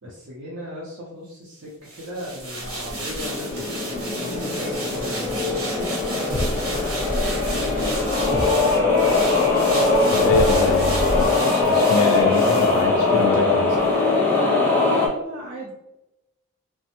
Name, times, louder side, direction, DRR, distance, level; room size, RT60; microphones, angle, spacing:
voice 1, 0.0-3.7 4.1-9.3 14.8-15.7, equal, 65° right, -6 dB, 0.6 m, -38 dB
sound 1, 1.8-13.4 13.8-13.9, right 2 dB, 80° right, 1.0 m, -34 dB
sound 2, 2.6-15.1, left 3 dB, 10° left, 0.5 m, -21 dB
sound 3, 6.3-11.3, equal, 30° right, 0.8 m, -30 dB
voice 2, 10.1-13.8, left 4 dB, 85° left, 3 dB, 0.3 m, -25 dB
3.1 x 2.1 x 2.9 m, 0.93 s
head